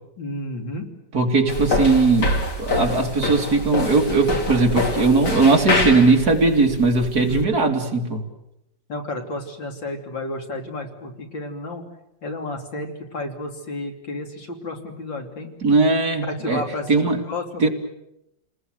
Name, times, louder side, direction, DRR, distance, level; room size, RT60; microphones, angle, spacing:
voice 1, 0.2-0.9 7.1-7.5 8.9-11.9 12.2-15.5 16.4-17.7, left 2 dB, 75° left, 3 dB, 3.7 m, -31 dB
voice 2, 1.1-2.3 2.6-8.2 15.6-16.6 16.9-17.2 17.6-17.7, right 3 dB, 55° right, 2 dB, 3.1 m, -19 dB
sound 1, 1.5-7.4, left 2 dB, 60° left, 3.4 m, -25 dB
29.5 x 20.0 x 7.9 m, 0.85 s
omnidirectional pair, 2.0 m